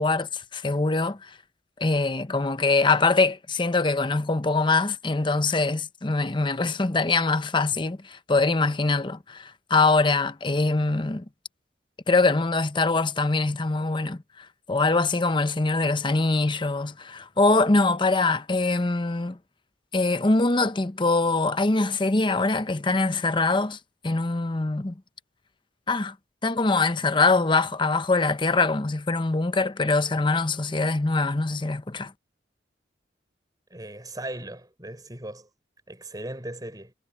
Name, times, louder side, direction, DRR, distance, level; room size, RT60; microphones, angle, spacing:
voice 1, 0.0-1.3 1.8-11.2 12.1-19.4 19.9-23.8 24.0-25.0 25.9-26.1 26.4-32.1, left 3 dB, 25° left, 0.8 m, -23 dB
voice 2, 33.7-35.5 35.9-36.9, right 1 dB, 20° right, 5.4 m, -38 dB
head